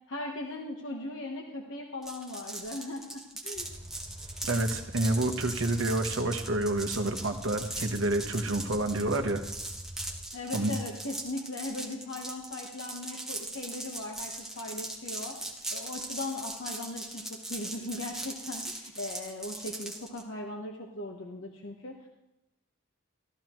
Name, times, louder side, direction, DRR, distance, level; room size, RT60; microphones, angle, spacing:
voice 1, 0.1-3.7 10.3-22.1, left 2 dB, 65° left, 1 dB, 1.2 m, -39 dB
sound 1, 2.0-20.2, right 2 dB, ahead, 1.4 m, -39 dB
sound 2, 3.5-10.2, equal, 20° right, 2.7 m, -45 dB
voice 2, 4.5-9.4 10.5-10.8, right 2 dB, 65° right, 5 dB, 1.1 m, -28 dB
14.0 x 14.0 x 3.1 m, 0.94 s
head